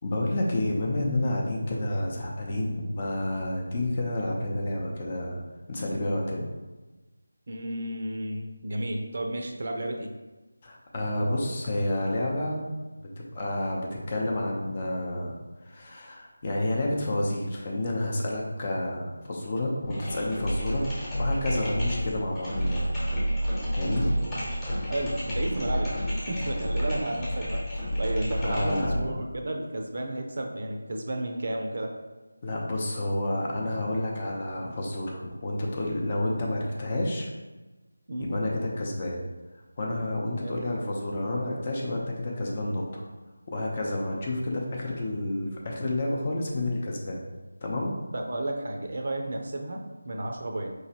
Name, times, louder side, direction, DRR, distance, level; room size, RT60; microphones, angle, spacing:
voice 1, 0.0-5.4 5.7-6.5 10.6-12.6 13.0-20.9 21.2-22.9 23.7-24.1 28.4-29.1 32.4-37.3 38.2-39.2 39.8-43.0 43.5-47.2 47.6-48.0, left 1 dB, 30° left, -2 dB, 0.7 m, -29 dB
voice 2, 7.5-10.1 24.1-24.5 24.9-25.9 26.3-32.0 38.1-38.3 40.4-40.5 48.1-50.7, right 1 dB, 55° right, 3 dB, 0.5 m, -32 dB
sound 1, 19.8-29.1, equal, 15° left, 1.1 m, -30 dB
4.8 x 3.1 x 2.9 m, 1.2 s
figure-of-eight pair, 170°, 0 cm